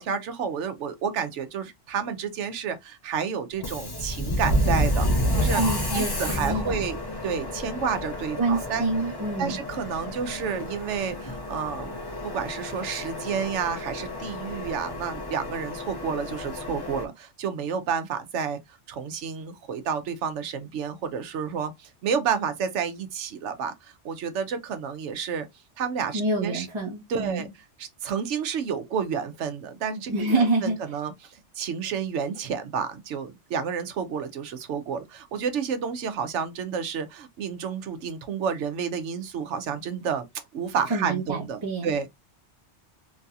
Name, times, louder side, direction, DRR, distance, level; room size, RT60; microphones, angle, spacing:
voice 1, 0.0-5.6 5.9-7.0 7.2-8.9 9.4-12.0 12.2-25.5 25.8-26.7 27.1-27.5 27.8-42.1, right 7 dB, 80° right, 1.0 m, -30 dB
Subway metro underground, 3.5-17.0, equal, 25° left, 0.7 m, -30 dB
voice 2, 5.6-6.8 8.4-9.6 26.1-27.5 30.1-30.8 40.9-42.1, right 2 dB, 25° right, 0.9 m, -27 dB
3.1 x 2.7 x 2.3 m
omnidirectional pair, 1.2 m